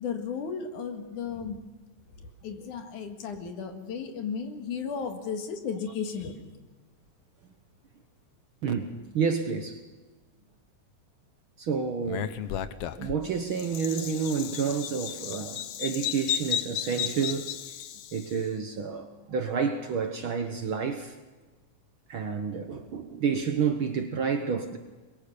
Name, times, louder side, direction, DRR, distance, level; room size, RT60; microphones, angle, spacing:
voice 1, 0.0-1.7 2.2-6.5, left 6 dB, 85° left, 3.3 m, -35 dB
voice 2, 8.6-9.8 11.6-12.5 13.0-17.5 18.1-21.2 22.1-24.8, right 6 dB, 55° right, 1.5 m, -29 dB
Bird vocalization bird call bird song, 12.0-18.3, left 10 dB, 65° left, 1.6 m, -34 dB
23.0 x 22.0 x 6.8 m
omnidirectional pair, 3.5 m